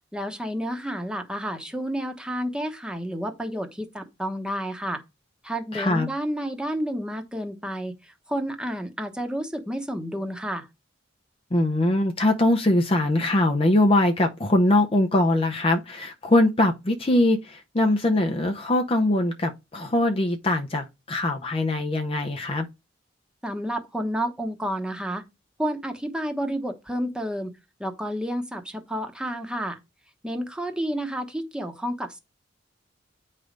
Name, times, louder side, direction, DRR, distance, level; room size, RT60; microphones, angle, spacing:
voice 1, 0.1-5.0 5.4-10.7 23.4-25.2 25.6-27.5 27.8-29.8 30.2-32.2, equal, 5° right, 1.0 m, -30 dB
voice 2, 5.7-6.1 11.5-22.7, left 1 dB, 30° left, 0.6 m, -22 dB
9.2 x 3.3 x 5.1 m
head